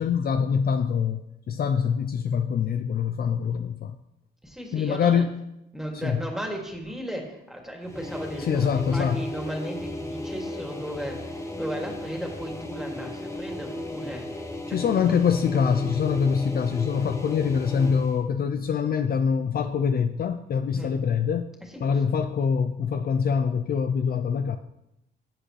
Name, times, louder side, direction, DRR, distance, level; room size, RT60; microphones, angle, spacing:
voice 1, 0.0-4.0 4.7-5.3 6.0-6.2 8.5-9.2 14.7-21.5 21.8-24.6, left 6 dB, 50° left, 8 dB, 0.6 m, -24 dB
voice 2, 4.4-5.2 5.7-15.2 20.7-20.9 21.9-22.1, equal, ahead, 0 dB, 2.5 m, -36 dB
sound 1, 7.8-18.2, left 1 dB, 15° left, 1.2 m, -35 dB
sound 2, 10.5-13.0, left 3 dB, 90° left, 2.2 m, -54 dB
14.5 x 7.8 x 3.3 m, 0.86 s
cardioid pair, 90°, 20 cm